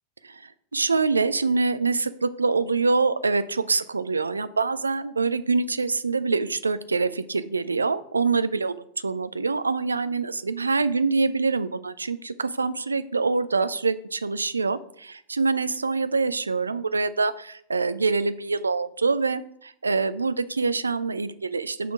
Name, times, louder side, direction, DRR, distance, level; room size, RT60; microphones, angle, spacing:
voice 1, 0.2-21.9, right 4 dB, 75° right, 13 dB, 0.4 m, -25 dB
5.9 x 3.6 x 5.7 m, 0.70 s
figure-of-eight pair, 90°, 0 cm